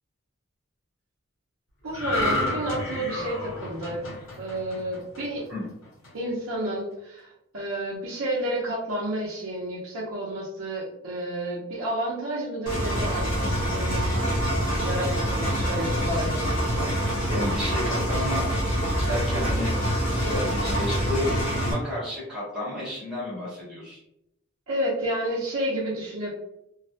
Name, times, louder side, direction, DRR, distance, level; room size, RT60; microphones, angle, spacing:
voice 1, 1.8-4.1 4.4-5.4 6.1-14.0 14.8-16.9 24.7-26.3, right 1 dB, 80° right, -5 dB, 0.6 m, -30 dB
sound 1, 1.9-5.4 5.8-6.1, left 1 dB, 65° left, 1.0 m, -30 dB
Engine, 12.7-21.7, equal, 40° left, 0.8 m, -26 dB
voice 2, 17.3-18.4 19.0-19.8 20.1-24.0, left 1 dB, ahead, -10 dB, 0.8 m, -31 dB
2.3 x 2.0 x 2.7 m, 0.83 s
head